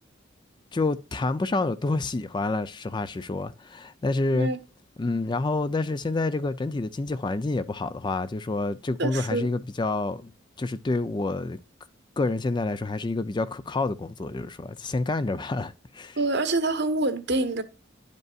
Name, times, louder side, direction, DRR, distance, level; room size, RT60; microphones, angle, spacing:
voice 1, 0.7-4.5 5.0-10.3 10.6-11.6 12.2-16.2, left 2 dB, 20° left, 0.4 m, -28 dB
voice 2, 9.0-9.4 16.2-17.6, right 2 dB, 55° right, 1.0 m, -26 dB
11.0 x 5.3 x 2.3 m
head